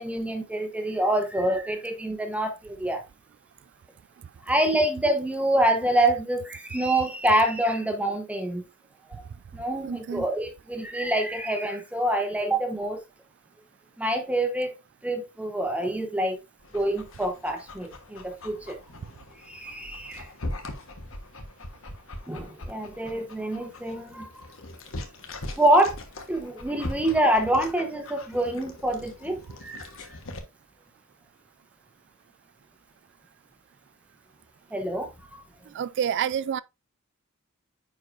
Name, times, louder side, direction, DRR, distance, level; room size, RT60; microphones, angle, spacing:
voice 1, 0.0-3.0 4.5-8.6 9.5-13.0 14.0-14.7 15.0-16.4 16.7-18.8 19.5-20.3 22.3-24.3 25.6-25.9 26.3-29.9 34.7-35.1, right 1 dB, 5° right, 1.0 m, -26 dB
voice 2, 9.8-10.3 35.7-36.6, right 8 dB, 55° right, 0.3 m, -28 dB
Dog, 16.6-30.4, left 1 dB, 65° left, 1.3 m, -41 dB
9.5 x 4.7 x 2.6 m
head